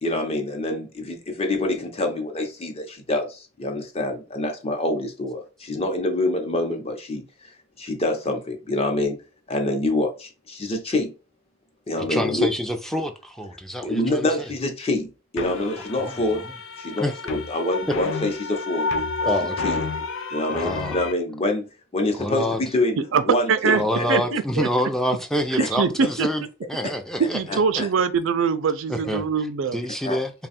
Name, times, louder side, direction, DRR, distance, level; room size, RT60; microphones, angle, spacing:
voice 1, 0.0-9.2 9.5-11.1 11.9-12.5 13.8-16.4 16.8-18.9 19.2-19.3 19.6-19.9 20.3-23.0 23.2-24.2 25.6-25.7 26.0-26.1 26.8-27.0 27.5-27.9 30.0-30.2, left 1 dB, 30° left, 0.8 m, -26 dB
voice 2, 12.1-14.3 16.0-16.1 17.0-17.1 19.3-19.7 20.5-21.0 22.2-22.6 23.7-27.8 28.9-29.5 29.7-30.3, equal, ahead, 0.4 m, -27 dB
sound 1, 15.4-21.1, left 3 dB, 75° left, 0.5 m, -30 dB
voice 3, 23.5-23.8 24.1-24.7 25.5-26.3 27.3-29.8, right 5 dB, 75° right, 0.4 m, -23 dB
3.4 x 2.3 x 4.1 m
head